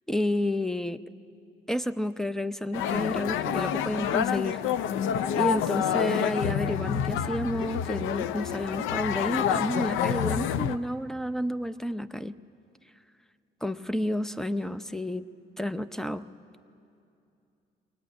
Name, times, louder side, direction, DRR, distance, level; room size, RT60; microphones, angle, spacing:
voice 1, 0.1-1.0 1.7-4.6 5.4-12.4 13.6-15.2 15.6-16.3, left 1 dB, ahead, 13 dB, 0.6 m, -30 dB
sound 1, 2.7-10.8, left 9 dB, 90° left, 0.6 m, -28 dB
22.5 x 18.5 x 9.5 m, 2.6 s
cardioid pair, 90°, 20 cm